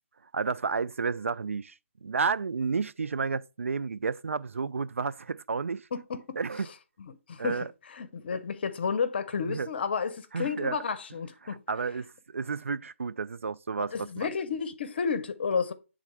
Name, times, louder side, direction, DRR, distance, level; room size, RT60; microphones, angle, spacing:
voice 1, 0.3-5.9 6.4-6.7 7.4-7.7 9.5-9.7 10.3-10.8 11.4-14.3, right 5 dB, 70° right, 0.3 m, -31 dB
voice 2, 5.9-6.4 7.0-11.6 13.8-15.7, left 5 dB, 50° left, 0.7 m, -32 dB
8.5 x 3.7 x 3.3 m
figure-of-eight pair, 145°, 7 cm